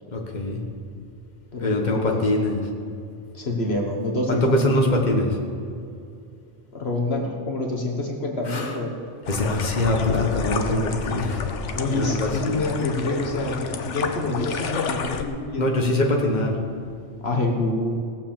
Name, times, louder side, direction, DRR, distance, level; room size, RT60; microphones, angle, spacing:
voice 1, 0.1-0.6 1.6-2.7 4.3-5.4 8.4-8.8 9.3-11.5 11.9-12.6 15.6-16.6, left 1 dB, 40° left, 1 dB, 1.6 m, -23 dB
voice 2, 1.5-2.2 3.3-5.1 6.7-8.9 11.7-15.6 17.2-18.0, left 2 dB, 60° left, 1 dB, 1.6 m, -27 dB
sound 1, 9.3-15.2, left 6 dB, 75° left, 1.2 m, -30 dB
18.0 x 7.1 x 7.4 m, 2.5 s
omnidirectional pair, 1.2 m